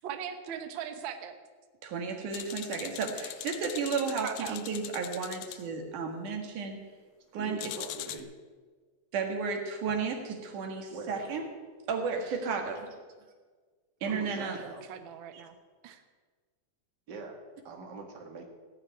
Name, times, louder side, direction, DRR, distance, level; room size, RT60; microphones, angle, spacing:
voice 1, 0.0-1.3 4.2-4.6 14.5-15.5 15.8-16.0, right 8 dB, 65° right, 7 dB, 1.2 m, -40 dB
voice 2, 1.8-6.8 7.3-7.7 9.1-11.5 11.9-12.8 14.0-14.6, right 5 dB, 85° right, 3 dB, 3.3 m, -33 dB
sound 1, 2.3-5.6 7.6-8.2, left 13 dB, 80° left, 1.8 m, -41 dB
voice 3, 7.4-8.3 10.9-11.2 14.0-14.8 17.1-18.5, right 3 dB, 40° right, 2 dB, 2.2 m, -43 dB
16.5 x 6.6 x 9.6 m, 1.5 s
omnidirectional pair, 3.5 m